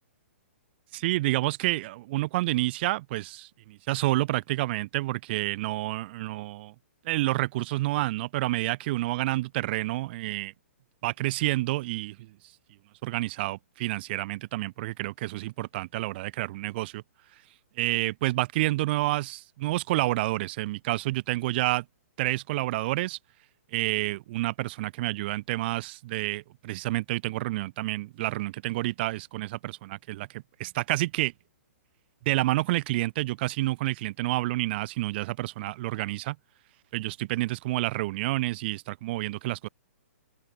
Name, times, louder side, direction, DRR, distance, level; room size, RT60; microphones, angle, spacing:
voice 1, 0.9-6.7 7.0-10.5 11.0-12.2 13.0-17.0 17.8-21.8 22.2-23.2 23.7-31.3 32.3-36.4 36.9-39.7, right 18 dB, 45° right, 2.4 m, -29 dB
hypercardioid pair, 130°, 8 cm